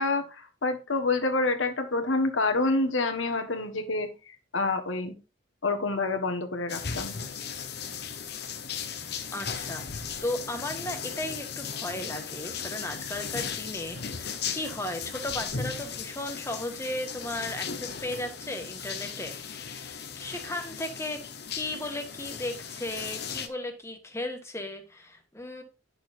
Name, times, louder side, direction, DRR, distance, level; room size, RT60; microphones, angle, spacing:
voice 1, 0.0-4.1 4.5-5.1 5.6-7.1, left 3 dB, 75° left, 6 dB, 1.5 m, -27 dB
sound 1, 6.7-23.5, left 6 dB, 55° left, 1.0 m, -37 dB
voice 2, 9.3-21.2 21.5-25.6, left 1 dB, 15° left, 4 dB, 1.5 m, -36 dB
10.0 x 6.7 x 2.6 m, 0.29 s
head